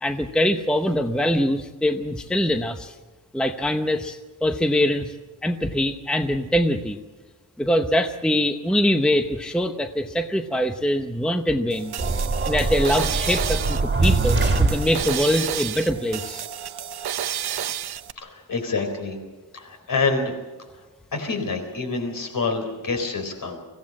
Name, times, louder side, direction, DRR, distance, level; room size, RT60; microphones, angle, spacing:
voice 1, 0.0-2.9 3.3-5.1 5.4-7.0 7.6-11.9 12.4-16.4, equal, ahead, 7 dB, 0.8 m, -23 dB
sound 1, 11.7-18.1, right 10 dB, 70° right, 0.8 m, -31 dB
sound 2, 12.0-15.3, right 3 dB, 25° right, 2.3 m, -23 dB
voice 2, 18.2-19.2 19.5-20.3 21.1-23.6, left 4 dB, 55° left, 5 dB, 4.2 m, -27 dB
24.5 x 16.0 x 7.5 m, 1.2 s
wide cardioid pair, 165°, 39 cm